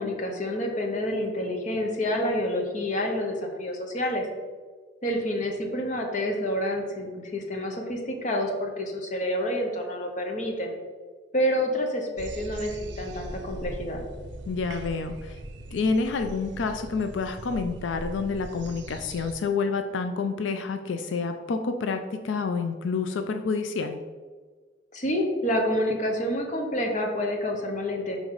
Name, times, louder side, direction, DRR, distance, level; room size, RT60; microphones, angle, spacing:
voice 1, 0.0-4.3 5.0-10.7 11.3-14.0 24.9-28.2, equal, 40° left, 2 dB, 0.9 m, -28 dB
sound 1, 12.2-19.3, right 1 dB, 65° right, 0.6 m, -40 dB
voice 2, 14.5-15.4 15.7-24.0, left 4 dB, 90° left, 7 dB, 0.4 m, -28 dB
5.2 x 3.9 x 4.7 m, 1.4 s
head